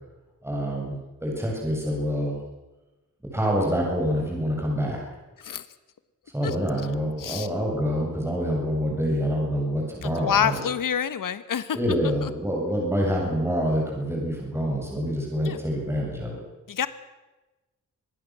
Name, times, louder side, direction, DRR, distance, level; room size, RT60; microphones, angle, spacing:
voice 1, 0.4-2.4 3.3-5.0 6.3-10.6 11.7-16.4, equal, 10° right, -1 dB, 7.7 m, -26 dB
voice 2, 10.0-11.8 12.2-12.3 15.4-15.6 16.7-16.9, left 8 dB, 80° left, 13 dB, 1.4 m, -27 dB
26.0 x 19.5 x 7.7 m, 1.1 s
wide cardioid pair, 125°, 32 cm